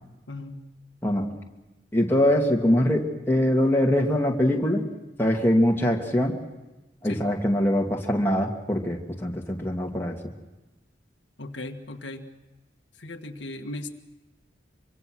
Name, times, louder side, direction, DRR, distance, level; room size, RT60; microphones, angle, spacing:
voice 1, 0.3-0.6 7.1-7.2 11.4-12.3 13.0-13.9, left 2 dB, 85° left, 4 dB, 1.8 m, -37 dB
voice 2, 1.0-1.3 1.9-4.9 5.2-6.4 7.0-10.2, left 1 dB, 10° left, -1 dB, 2.5 m, -23 dB
25.0 x 24.5 x 6.4 m, 1.1 s
head